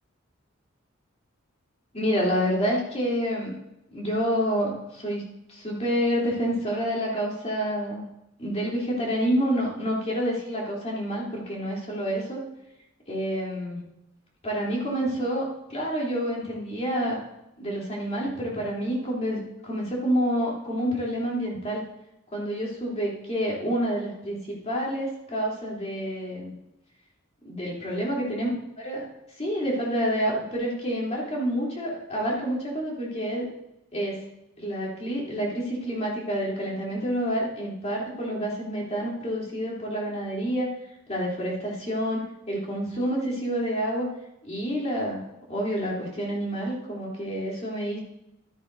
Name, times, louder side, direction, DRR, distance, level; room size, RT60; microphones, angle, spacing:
voice 1, 1.9-3.5 3.9-5.2 5.5-8.1 8.4-12.4 13.1-13.8 14.4-17.2 17.6-21.8 22.3-26.5 27.4-28.5 28.8-29.0 29.4-33.5 33.9-34.2 34.6-40.7 41.1-42.2 42.5-44.1 44.4-45.2 45.5-48.0, equal, 35° left, -4 dB, 3.2 m, -28 dB
13.5 x 9.7 x 2.7 m, 0.88 s
head